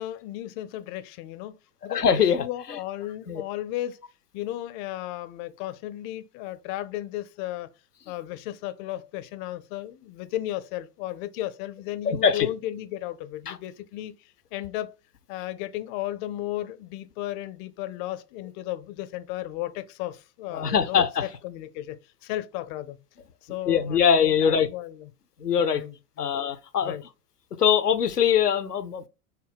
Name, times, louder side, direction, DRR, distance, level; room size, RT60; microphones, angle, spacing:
voice 1, 0.0-1.6 1.8-2.0 2.4-4.0 4.3-7.7 8.1-14.2 14.5-14.9 15.3-21.0 21.4-23.0 23.5-25.1 25.6-26.3 26.8-27.0, left 14 dB, 35° left, 0.5 m, -34 dB
voice 2, 1.9-2.8 3.3-3.4 12.0-12.5 13.5-13.6 20.5-21.3 23.7-24.7 25.4-25.9 26.2-26.9 27.6-29.1, left 7 dB, 85° left, 0.6 m, -22 dB
5.6 x 2.1 x 3.4 m
figure-of-eight pair, 85°, 46 cm